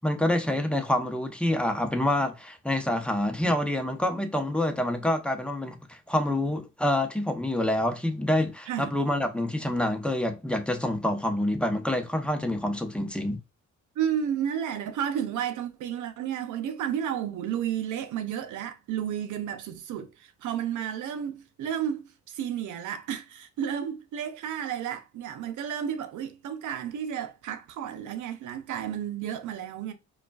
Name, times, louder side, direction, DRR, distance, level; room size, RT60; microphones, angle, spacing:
voice 1, 0.0-13.4, left 1 dB, 5° left, 0.7 m, -27 dB
voice 2, 14.0-29.9, right 9 dB, 80° right, 0.7 m, -32 dB
4.9 x 2.4 x 2.3 m
cardioid pair, 90°, 30 cm